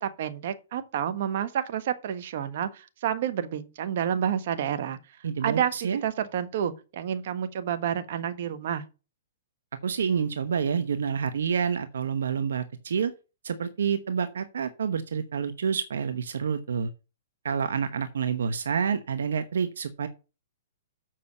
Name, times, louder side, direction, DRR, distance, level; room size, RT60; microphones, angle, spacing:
voice 1, 0.0-5.0 5.4-5.7 6.0-8.8, right 9 dB, 60° right, 1.4 m, -29 dB
voice 2, 5.2-6.0 9.8-13.1 13.4-16.9 17.4-20.1, right 6 dB, 80° right, 1.1 m, -28 dB
7.6 x 5.6 x 6.6 m
hypercardioid pair, 130°, 0 cm